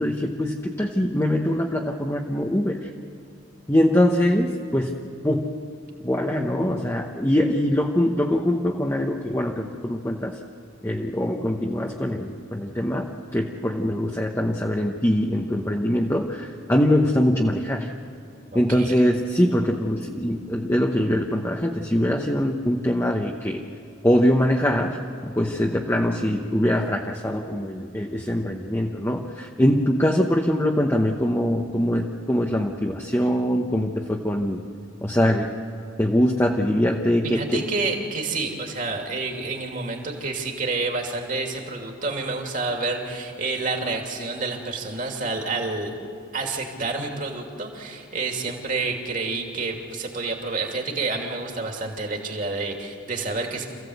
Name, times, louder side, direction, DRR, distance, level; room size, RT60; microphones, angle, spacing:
voice 1, 0.0-2.9 3.7-5.0 5.2-5.5 6.0-10.4 10.8-17.9 18.5-23.6 24.0-34.7 35.0-35.6 36.0-37.6, equal, 15° left, 1 dB, 0.9 m, -23 dB
voice 2, 18.5-18.9 37.2-46.0 46.3-53.7, right 3 dB, 40° right, 1 dB, 2.7 m, -29 dB
27.0 x 15.5 x 8.0 m, 2.4 s
head